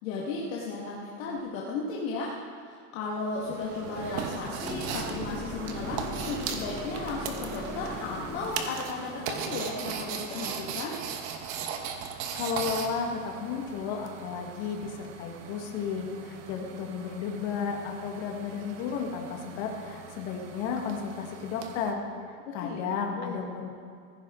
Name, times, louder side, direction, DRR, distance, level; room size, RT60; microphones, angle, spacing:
voice 1, 0.0-2.4 2.6-11.0 22.5-22.8 23.2-23.5, left 3 dB, 55° left, -4 dB, 1.9 m, -35 dB
sound 1, 3.1-8.9, right 5 dB, 20° right, 0.4 m, -42 dB
sound 2, 4.0-21.9, right 7 dB, 40° right, 1.2 m, -39 dB
sound 3, 4.6-9.7 13.7-13.8, left 2 dB, 5° left, 1.0 m, -40 dB
voice 2, 12.3-22.0 22.5-23.7, left 6 dB, 35° left, 2 dB, 1.6 m, -33 dB
16.0 x 15.0 x 3.8 m, 2.4 s
supercardioid pair, 175°, 46 cm